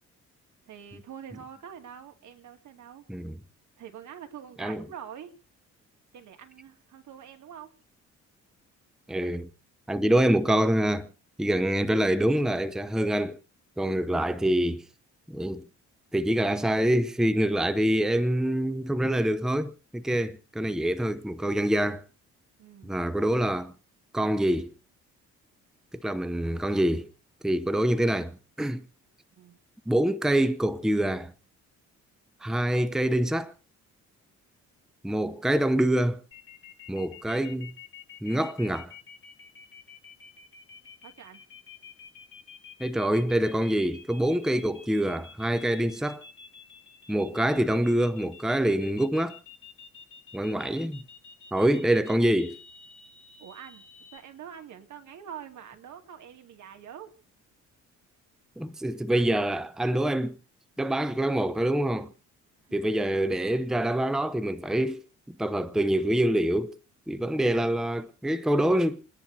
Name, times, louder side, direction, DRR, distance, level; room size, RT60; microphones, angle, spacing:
voice 1, 0.7-3.1 3.8-5.3 6.1-7.7 22.6-22.9 29.3-29.6 41.0-41.4 53.4-53.8 54.1-57.1 62.7-62.8, right 8 dB, 70° right, 2.6 m, -45 dB
voice 2, 9.1-9.5 9.9-11.1 11.4-13.4 13.8-14.8 15.3-15.7 16.1-22.0 22.8-23.7 24.1-24.7 26.0-27.1 27.4-28.8 29.9-31.3 32.4-33.5 35.0-36.2 36.9-37.7 38.2-38.9 42.8-46.2 47.1-49.4 50.3-51.0 51.5-52.6 58.6-60.4 60.8-62.1 62.7-65.0 65.3-66.8 67.1-69.1, right 1 dB, ahead, 0.8 m, -25 dB
sound 1, 36.3-54.2, left 6 dB, 40° left, 4.6 m, -49 dB
29.5 x 10.5 x 2.8 m
cardioid pair, 90°, 30 cm